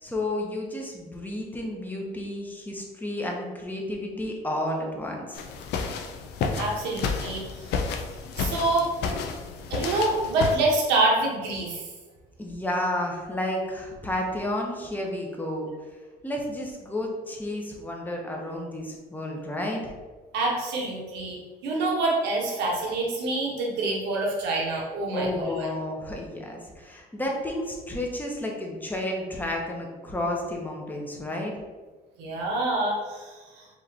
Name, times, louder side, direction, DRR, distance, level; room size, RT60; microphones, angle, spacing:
voice 1, 0.0-5.4 12.4-15.7 16.2-19.9 25.1-31.5, left 1 dB, 10° left, 0 dB, 0.8 m, -31 dB
sound 1, 5.3-10.6, left 5 dB, 80° left, 0.5 m, -31 dB
voice 2, 6.6-7.8 8.4-8.9 9.7-11.9 20.3-25.7 32.2-33.8, right 2 dB, 90° right, -2 dB, 1.2 m, -26 dB
4.8 x 3.1 x 2.8 m, 1.3 s
cardioid pair, 110°, 17 cm